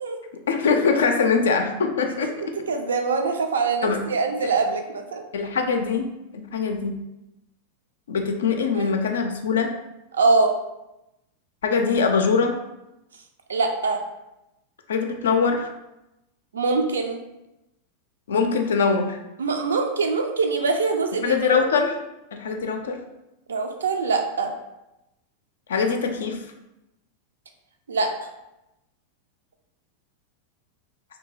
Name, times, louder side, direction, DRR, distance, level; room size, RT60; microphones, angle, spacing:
voice 1, 0.5-2.3 3.8-4.0 5.3-7.0 8.1-9.7 11.6-12.5 14.9-15.7 18.3-19.2 21.2-21.9 22.4-23.0 25.7-26.4, left 5 dB, 65° left, 4 dB, 0.3 m, -22 dB
voice 2, 2.2-5.2 8.7-8.9 10.1-10.5 13.5-14.0 16.5-17.2 19.4-21.6 23.5-24.5 27.9-28.3, right 4 dB, 70° right, 4 dB, 0.3 m, -24 dB
2.7 x 2.2 x 3.1 m, 0.93 s
figure-of-eight pair, 90°, 0 cm